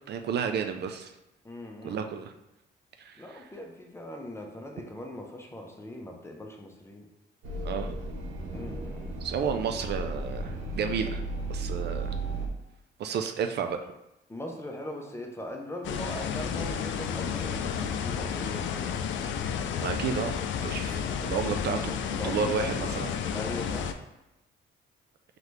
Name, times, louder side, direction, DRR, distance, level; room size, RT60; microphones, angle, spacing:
voice 1, 0.1-1.1 1.8-2.3 3.0-3.4 7.6-8.0 9.2-11.2 11.5-12.1 13.0-13.8 19.8-23.1, right 6 dB, 60° right, 6 dB, 0.4 m, -32 dB
voice 2, 1.4-2.2 3.2-7.1 8.5-9.3 14.3-19.0 20.9-22.9 23.3-23.9, left 1 dB, 15° left, 1 dB, 0.7 m, -40 dB
sound 1, 7.4-12.5, right 2 dB, 80° right, 0.8 m, -35 dB
sound 2, 15.8-23.9, left 7 dB, 70° left, 0.4 m, -31 dB
3.9 x 3.3 x 3.2 m, 0.92 s
cardioid pair, 90°, 20 cm